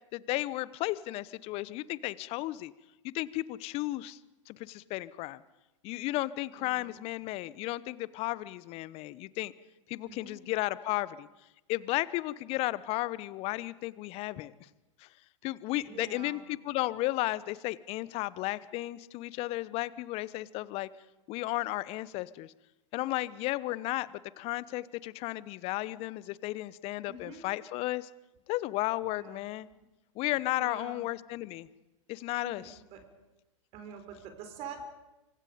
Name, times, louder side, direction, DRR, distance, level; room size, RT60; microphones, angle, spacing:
voice 1, 0.1-2.7 3.0-4.2 4.5-5.4 5.8-9.5 9.9-11.3 11.7-14.5 15.0-15.1 15.4-20.9 21.3-22.5 22.9-24.1 24.4-28.1 28.5-29.7 30.1-31.7 32.1-32.8, left 18 dB, 35° left, 19 dB, 1.0 m, -34 dB
voice 2, 6.6-7.0 10.0-10.4 15.8-16.4 27.1-27.4 29.0-29.4 30.6-31.0 32.3-33.0 33.7-34.8, right 5 dB, 40° right, 7 dB, 4.2 m, -46 dB
26.0 x 25.5 x 5.2 m, 1.0 s
figure-of-eight pair, 100°, 17 cm